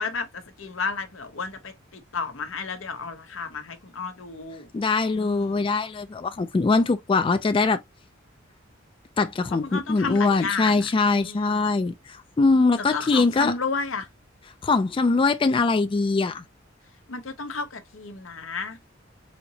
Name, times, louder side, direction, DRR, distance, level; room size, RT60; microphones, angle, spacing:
voice 1, 0.0-4.7 5.1-5.6 9.6-11.7 12.8-14.1 17.1-18.8, left 4 dB, 85° left, 1.0 m, -32 dB
voice 2, 4.7-7.8 9.2-13.5 14.6-16.4, left 3 dB, 25° left, 0.3 m, -22 dB
4.3 x 2.8 x 2.7 m
head